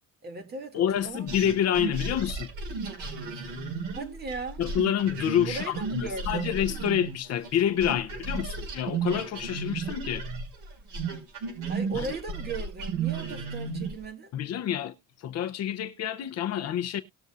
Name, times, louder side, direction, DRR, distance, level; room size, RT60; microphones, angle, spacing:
voice 1, 0.2-1.4 3.9-4.6 5.4-6.5 11.7-14.3, right 4 dB, 30° right, 2.1 m, -37 dB
voice 2, 0.7-2.5 4.6-10.3 11.9-12.1 14.3-17.0, left 10 dB, 50° left, 0.7 m, -28 dB
sound 1, 1.3-7.6 7.8-14.0, right 4 dB, 65° right, 5.5 m, -34 dB
19.0 x 6.7 x 2.4 m
cardioid pair, 180°, 34 cm